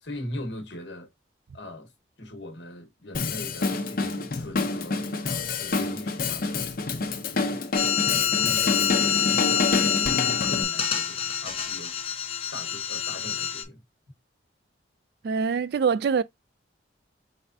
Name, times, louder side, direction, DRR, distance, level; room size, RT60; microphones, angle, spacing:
voice 1, 0.0-1.1 1.5-1.9 2.2-6.8 7.3-7.7 8.0-12.0 12.5-13.8, left 1 dB, 65° left, 1.4 m, -40 dB
Drum kit, 3.1-10.6, left 3 dB, 50° left, 0.7 m, -28 dB
sound 1, 7.7-13.6, left 8 dB, 30° left, 1.0 m, -26 dB
voice 2, 15.2-16.2, right 6 dB, 55° right, 0.3 m, -24 dB
4.5 x 3.9 x 2.6 m
head